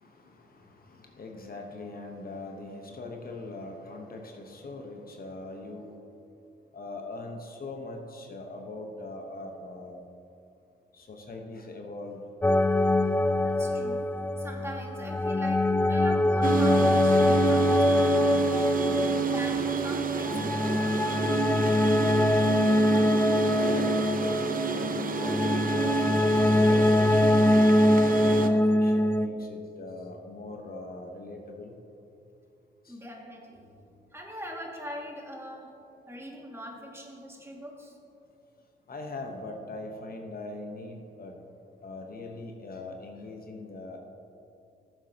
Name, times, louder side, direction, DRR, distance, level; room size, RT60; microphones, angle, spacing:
voice 1, 0.0-5.9 6.7-10.0 10.9-12.2 21.0-21.1 23.5-27.6 28.3-31.7 32.8-33.0 38.9-41.4 41.8-44.0, left 2 dB, 50° left, 2 dB, 1.1 m, -41 dB
sound 1, 12.4-29.3, left 1 dB, 10° left, 0.4 m, -24 dB
voice 2, 13.4-14.1 14.4-18.8 19.3-20.9 32.9-35.7 36.1-38.0, equal, 15° right, -1 dB, 2.1 m, -42 dB
sound 2, 16.4-28.5, right 5 dB, 45° right, 0.8 m, -30 dB
14.0 x 7.8 x 2.9 m, 2.6 s
supercardioid pair, 55°, 20 cm